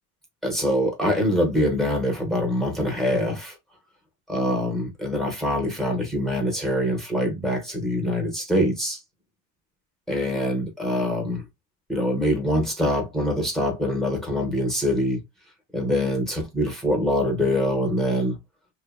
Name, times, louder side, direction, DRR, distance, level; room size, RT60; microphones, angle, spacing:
voice 1, 0.4-3.6 4.3-9.0 10.1-11.4 11.9-15.2 15.7-18.4, equal, ahead, 0.6 m, -24 dB
2.5 x 2.0 x 2.4 m
cardioid pair, 130°, 40 cm